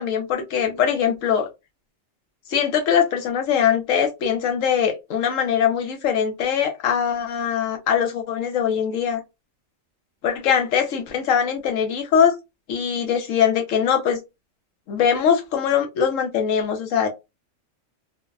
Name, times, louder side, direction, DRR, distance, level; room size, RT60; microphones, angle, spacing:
voice 1, 0.0-1.5 2.5-9.2 10.2-12.3 12.7-14.2 14.9-17.1, left 8 dB, 75° left, 1.1 m, -22 dB
3.2 x 2.1 x 2.3 m
omnidirectional pair, 1.4 m